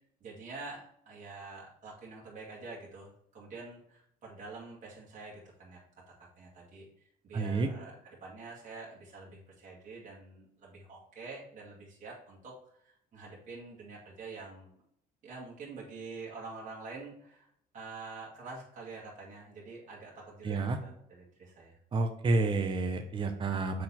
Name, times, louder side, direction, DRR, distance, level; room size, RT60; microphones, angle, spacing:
voice 1, 0.2-5.8 6.4-14.7 15.2-17.5 17.7-21.8, right 3 dB, 45° right, -5 dB, 2.0 m, -47 dB
voice 2, 7.3-7.7 20.4-20.8 21.9-23.8, right 3 dB, 30° right, 5 dB, 0.7 m, -29 dB
6.5 x 4.2 x 4.2 m, 0.73 s
cardioid pair, 110°, 17 cm